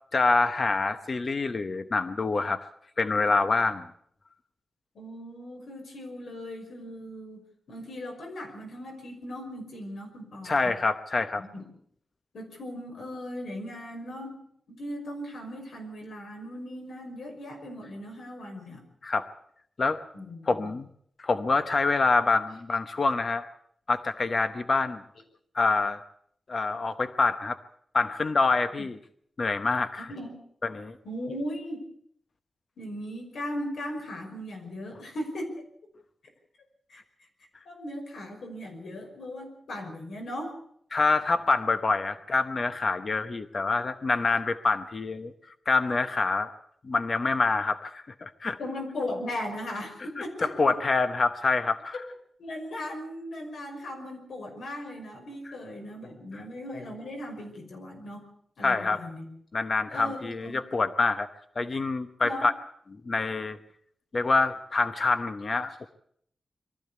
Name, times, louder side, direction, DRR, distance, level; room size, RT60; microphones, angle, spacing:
voice 1, 0.1-2.7 3.0-3.9 10.4-11.4 19.0-19.3 19.8-20.0 20.5-20.9 21.2-23.5 23.9-25.0 25.5-26.0 26.5-27.6 27.9-29.0 29.4-30.1 30.6-31.0 40.9-45.3 45.7-46.5 46.8-48.6 50.4-52.0 58.6-59.0 59.5-61.3 61.6-62.5 63.1-63.6 64.1-65.9, left 3 dB, 35° left, 10 dB, 0.9 m, -26 dB
voice 2, 4.9-10.8 11.4-11.7 12.3-14.4 14.7-18.8 20.1-20.7 28.7-28.9 30.1-30.4 31.0-31.8 32.8-35.5 36.9-37.3 37.7-40.6 48.6-50.8 52.4-58.3 58.6-59.2 59.9-60.6 62.2-62.5, left 1 dB, 80° left, 3 dB, 5.6 m, -38 dB
23.0 x 14.0 x 8.2 m, 0.67 s
wide cardioid pair, 180°, 0 cm